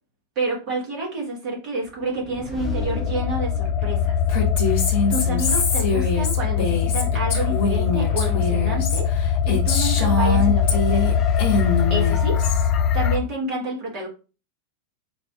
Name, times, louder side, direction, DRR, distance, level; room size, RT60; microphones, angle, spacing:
voice 1, 0.3-4.2 5.1-9.1 9.4-11.1 11.9-12.4 12.9-14.1, right 1 dB, 40° right, -1 dB, 1.4 m, -29 dB
sound 1, 1.9-3.8 4.9-6.4, right 3 dB, 5° left, 0.9 m, -37 dB
sound 2, 2.6-13.2, left 7 dB, 30° left, 0.3 m, -22 dB
Female speech woman speaking, 4.3-11.1 11.4-12.7, left 3 dB, 45° left, 1.0 m, -24 dB
4.1 x 2.5 x 2.3 m, 0.34 s
figure-of-eight pair, 90°, 0 cm